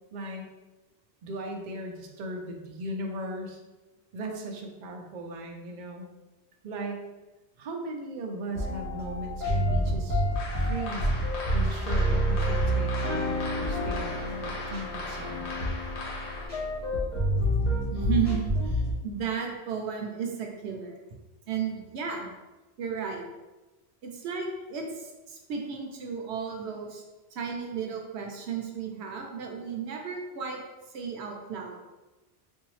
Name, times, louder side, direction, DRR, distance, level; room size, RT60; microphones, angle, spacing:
voice 1, 0.1-0.4 1.2-3.6 4.1-6.1 6.6-7.0 7.6-10.2 10.6-11.1 11.5-15.7, right 1 dB, 55° right, 2 dB, 0.6 m, -38 dB
sound 1, 8.5-18.9, equal, 40° left, 1.4 m, -28 dB
sound 2, 10.4-16.5, left 2 dB, 90° left, 0.9 m, -39 dB
voice 2, 17.9-21.0 21.5-22.3 22.8-23.3 24.0-27.0 27.3-30.6 30.9-31.8, right 6 dB, 85° right, 2 dB, 0.9 m, -33 dB
3.8 x 2.7 x 3.1 m, 1.1 s
omnidirectional pair, 1.1 m